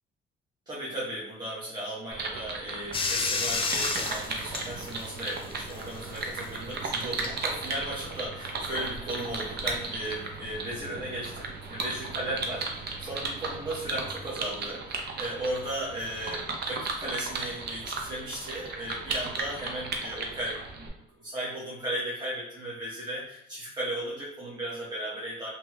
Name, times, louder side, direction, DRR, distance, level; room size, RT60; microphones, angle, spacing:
voice 1, 0.7-20.8 21.2-25.5, right 1 dB, 20° right, -8 dB, 1.0 m, -36 dB
sound 1, 2.1-20.9, right 3 dB, 55° right, 0.6 m, -36 dB
Bathtub (filling or washing), 2.9-14.1, left 3 dB, 25° left, 0.4 m, -37 dB
2.9 x 2.9 x 2.3 m, 0.81 s
cardioid pair, 90°, 20 cm